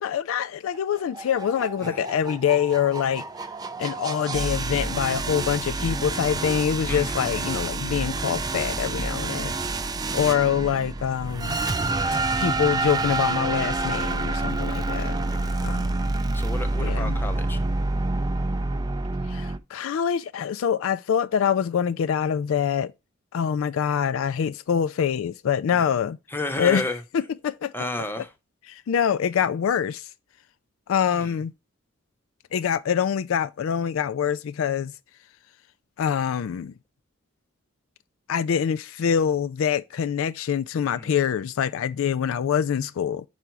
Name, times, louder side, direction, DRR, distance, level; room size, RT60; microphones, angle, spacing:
voice 1, 0.0-3.2 3.8-9.6 10.1-11.6 12.4-15.2 15.6-15.8 16.8-17.2 19.3-22.9 23.3-26.2 26.6-26.8 27.1-27.7 28.7-30.1 30.9-31.5 32.5-34.9 36.0-36.7 38.3-43.2, left 8 dB, 80° left, 0.3 m, -25 dB
sound 1, 0.7-19.6, right 2 dB, 20° right, 0.4 m, -28 dB
voice 2, 16.3-17.6 25.7-25.9 26.3-27.0 27.7-28.3 31.1-31.4 40.9-41.1, left 2 dB, 10° left, 0.8 m, -32 dB
5.6 x 5.0 x 4.6 m
head